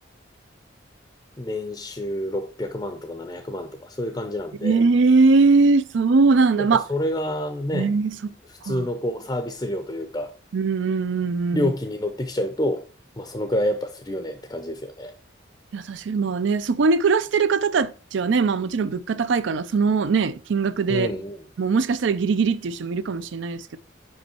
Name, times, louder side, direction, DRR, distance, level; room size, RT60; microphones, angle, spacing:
voice 1, 1.4-4.8 6.6-7.9 8.5-10.3 11.5-12.8 13.2-15.1 20.9-21.5, left 1 dB, 20° left, 0.5 m, -28 dB
voice 2, 4.6-6.8 7.7-8.3 8.6-8.9 10.5-11.7 15.7-21.1 21.6-23.8, right 4 dB, 75° right, 0.4 m, -21 dB
5.4 x 5.4 x 4.3 m
head